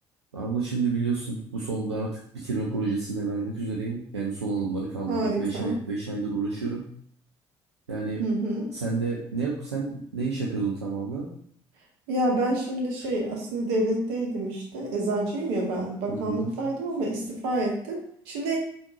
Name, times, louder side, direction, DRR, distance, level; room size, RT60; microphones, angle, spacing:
voice 1, 0.3-6.9 7.9-8.2 8.7-11.3 16.1-16.6, right 4 dB, 85° right, -4 dB, 0.4 m, -30 dB
voice 2, 5.1-5.8 8.2-8.7 12.1-18.6, right 1 dB, 65° right, -1 dB, 0.9 m, -28 dB
3.5 x 2.5 x 2.8 m, 0.63 s
figure-of-eight pair, 55°, 14 cm